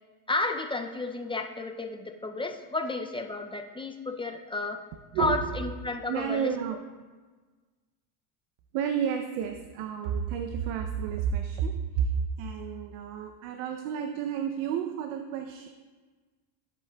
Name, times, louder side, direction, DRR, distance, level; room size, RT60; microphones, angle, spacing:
voice 1, 0.3-4.8 5.2-6.5, left 2 dB, 10° left, 5 dB, 0.3 m, -32 dB
voice 2, 5.1-5.5 6.1-6.8 8.7-12.1 12.4-15.7, right 8 dB, 80° right, 6 dB, 0.7 m, -31 dB
14.0 x 8.3 x 2.3 m, 1.4 s
supercardioid pair, 105°, 49 cm